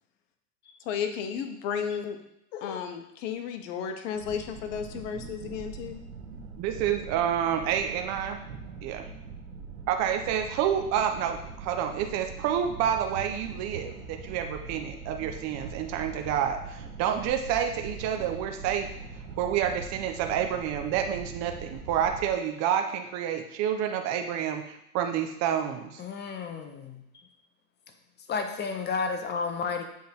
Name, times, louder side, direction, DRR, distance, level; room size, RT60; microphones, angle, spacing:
voice 1, 0.8-2.2 2.5-6.0, left 7 dB, 55° left, 6 dB, 1.0 m, -33 dB
sound 1, 4.1-22.3, right 4 dB, 80° right, 1.3 m, -42 dB
voice 2, 6.6-8.4 8.8-9.1 9.9-18.9 19.4-26.0, right 9 dB, 35° right, 5 dB, 0.7 m, -29 dB
voice 3, 26.0-27.0 28.3-29.8, left 5 dB, 20° left, 5 dB, 0.9 m, -32 dB
7.4 x 3.6 x 4.5 m, 0.80 s
hypercardioid pair, 105°, 46 cm